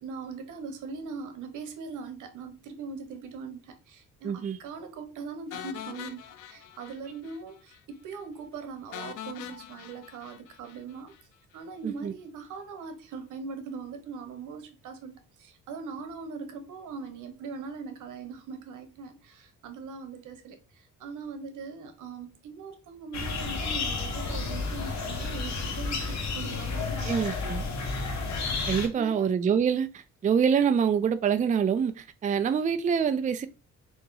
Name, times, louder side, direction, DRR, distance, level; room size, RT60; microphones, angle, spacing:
voice 1, 0.0-11.1 11.5-27.2 29.0-29.3, right 5 dB, 80° right, 1.0 m, -41 dB
voice 2, 4.2-4.6 11.8-12.1 27.1-27.6 28.7-33.5, right 7 dB, 25° right, 0.4 m, -26 dB
sound 1, 5.5-7.4 7.7-7.8 8.1-8.2 8.9-11.2, left 11 dB, 80° left, 0.6 m, -43 dB
sound 2, 23.1-28.9, left 4 dB, 65° left, 1.2 m, -31 dB
3.9 x 2.9 x 3.8 m
cardioid pair, 90°, 30 cm